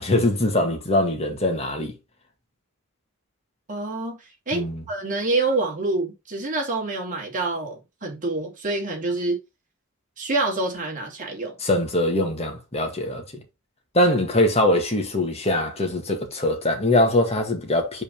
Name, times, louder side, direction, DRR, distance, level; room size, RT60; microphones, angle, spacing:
voice 1, 0.0-1.9 4.5-4.8 11.6-13.2 13.9-18.0, left 1 dB, 30° left, 1.8 m, -22 dB
voice 2, 3.7-4.2 4.5-9.4 10.2-11.6, right 2 dB, 40° right, 2.5 m, -27 dB
5.4 x 4.1 x 5.2 m
head